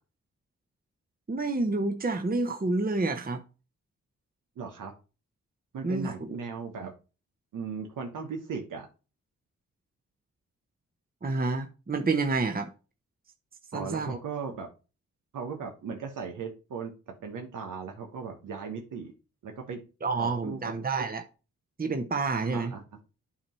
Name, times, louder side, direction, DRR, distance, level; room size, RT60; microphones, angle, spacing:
voice 1, 1.3-3.4 5.8-6.4 11.2-12.7 13.7-14.1 20.0-21.2 21.8-22.7, right 3 dB, 30° right, 1.0 m, -29 dB
voice 2, 4.6-4.9 5.7-6.9 7.5-8.9 13.7-14.7 15.3-19.1 19.4-19.8 20.2-20.6 21.0-21.1 22.4-22.8, right 5 dB, 80° right, 1.2 m, -37 dB
8.6 x 2.9 x 5.5 m
supercardioid pair, 45°, 31 cm